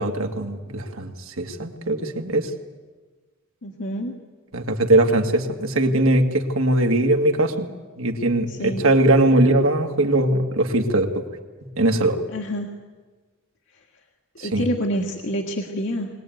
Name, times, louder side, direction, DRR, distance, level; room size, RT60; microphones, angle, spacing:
voice 1, 0.0-2.5 4.5-7.7 8.0-11.2 11.8-12.2 14.4-14.7, right 1 dB, 70° right, 4 dB, 2.2 m, -20 dB
voice 2, 3.6-4.1 8.5-8.8 12.3-12.7 14.4-16.1, equal, 60° left, 1 dB, 1.8 m, -27 dB
23.0 x 18.5 x 9.4 m, 1.4 s
head